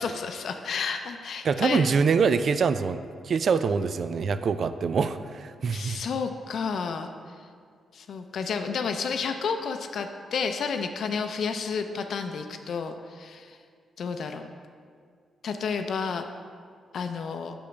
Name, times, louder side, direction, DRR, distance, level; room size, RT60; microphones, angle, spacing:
voice 1, 0.0-1.9 5.7-7.1 7.9-13.6 14.0-14.4 15.4-16.2 16.9-17.5, left 5 dB, 65° left, 6 dB, 0.5 m, -31 dB
voice 2, 1.4-6.0, right 5 dB, 55° right, 12 dB, 0.3 m, -25 dB
7.0 x 5.1 x 5.8 m, 2.1 s
cardioid pair, 105°, 0 cm